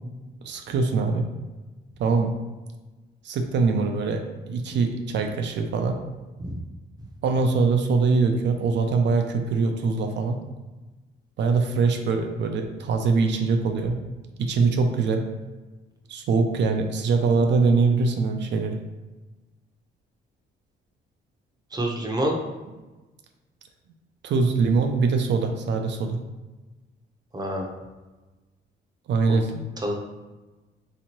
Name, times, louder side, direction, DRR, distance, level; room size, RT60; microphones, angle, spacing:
voice 1, 0.4-1.3 2.0-2.3 3.2-4.2 4.5-6.0 7.2-10.4 11.4-14.0 14.4-15.2 16.1-18.8 24.2-26.2 29.1-29.6, right 4 dB, 65° right, 4 dB, 0.5 m, -23 dB
voice 2, 21.7-22.4 27.3-27.7 29.3-29.4 29.8-30.0, right 1 dB, 20° right, 1 dB, 0.7 m, -27 dB
3.4 x 2.9 x 2.9 m, 1.2 s
cardioid pair, 90°, 20 cm